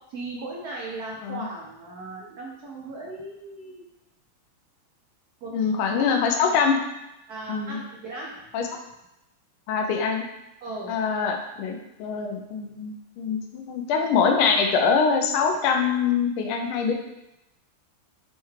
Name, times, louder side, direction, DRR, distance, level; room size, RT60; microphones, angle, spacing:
voice 1, 0.1-3.8 5.4-5.5 5.9-6.0 7.3-8.4 10.6-10.9, right 2 dB, 85° right, -4 dB, 0.8 m, -37 dB
voice 2, 5.5-6.8 7.5-7.8 8.5-8.7 9.7-10.2 10.9-16.9, left 5 dB, 80° left, 4 dB, 1.4 m, -24 dB
5.4 x 2.3 x 3.1 m, 0.91 s
omnidirectional pair, 2.4 m